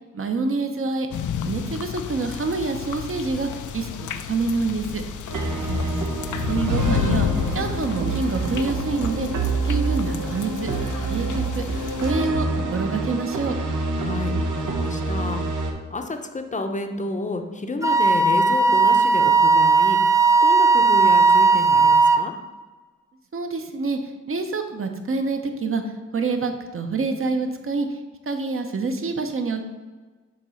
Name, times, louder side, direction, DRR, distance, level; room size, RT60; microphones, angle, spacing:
voice 1, 0.1-1.1 1.4-5.0 6.5-7.3 7.5-9.3 9.6-10.7 11.0-13.6 23.3-28.0 28.3-29.6, right 3 dB, 45° right, 6 dB, 0.8 m, -27 dB
sound 1, 1.1-12.1, left 8 dB, 80° left, 0.5 m, -30 dB
sound 2, 5.3-15.7, right 3 dB, 80° right, 1.0 m, -27 dB
voice 2, 5.4-6.2 14.0-22.3, left 2 dB, 25° left, 5 dB, 0.7 m, -31 dB
Wind instrument woodwind instrument, 17.8-22.3, right 4 dB, 10° right, 0.4 m, -16 dB
7.4 x 3.0 x 5.6 m, 1.3 s
wide cardioid pair, 110°, 30 cm